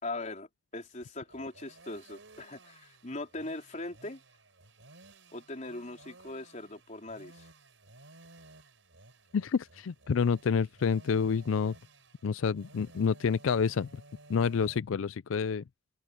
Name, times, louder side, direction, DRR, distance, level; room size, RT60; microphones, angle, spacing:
voice 1, 0.0-4.2 5.3-7.5, left 2 dB, 40° left, 4.3 m, -40 dB
sound 1, 0.7-14.8, right 2 dB, 75° right, 5.3 m, -56 dB
voice 2, 9.3-11.7 12.2-13.9 14.3-15.6, left 6 dB, 85° left, 0.4 m, -28 dB
open air
head